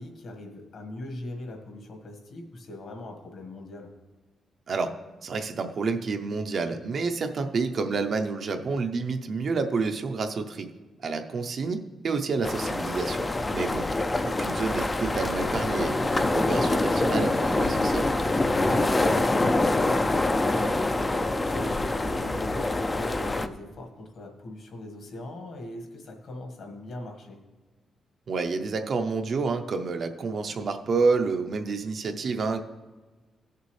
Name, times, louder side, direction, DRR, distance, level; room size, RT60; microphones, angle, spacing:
voice 1, 0.0-3.9 13.3-13.6 18.4-27.4, left 1 dB, 55° left, 3 dB, 1.5 m, -40 dB
voice 2, 5.2-10.7 11.0-13.8 14.2-18.1 28.3-32.6, right 4 dB, 45° right, 6 dB, 0.6 m, -29 dB
sound 1, 12.4-23.5, left 2 dB, 15° left, 0.4 m, -25 dB
15.5 x 6.7 x 3.2 m, 1.3 s
wide cardioid pair, 160°, 0 cm